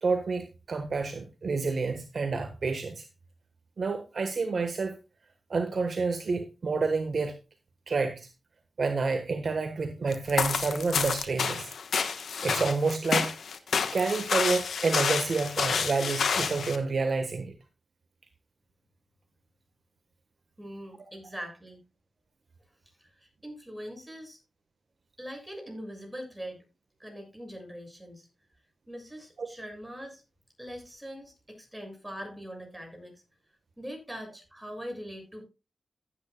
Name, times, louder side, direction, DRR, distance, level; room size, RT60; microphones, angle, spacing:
voice 1, 0.0-3.1 3.8-5.0 5.5-7.3 7.9-8.3 8.8-11.7 12.0-12.1 12.4-13.3 13.9-17.5 29.4-29.5, right 4 dB, 65° right, 7 dB, 1.3 m, -29 dB
sound 1, 10.1-16.8, left 6 dB, 80° left, 1.1 m, -29 dB
voice 2, 20.6-21.8 23.0-24.4 25.2-26.6 27.0-28.3 28.9-30.2 30.6-33.1 33.8-35.5, equal, 10° right, 2 dB, 6.9 m, -42 dB
15.0 x 9.1 x 2.2 m, 0.28 s
cardioid pair, 45°, 0 cm